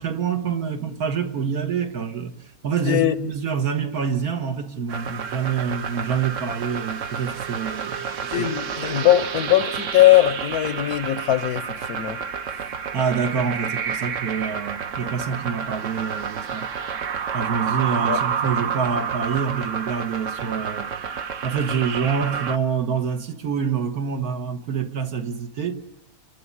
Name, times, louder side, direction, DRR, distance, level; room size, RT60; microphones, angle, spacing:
voice 1, 0.0-2.3 2.6-8.5 12.9-16.7 17.3-20.9 21.4-25.7, right 6 dB, 80° right, 1.8 m, -26 dB
voice 2, 2.8-3.1 8.3-12.2 18.1-18.2, left 14 dB, 85° left, 1.4 m, -20 dB
sound 1, 4.9-22.6, right 6 dB, 60° right, 1.2 m, -29 dB
28.5 x 11.5 x 9.8 m
omnidirectional pair, 1.6 m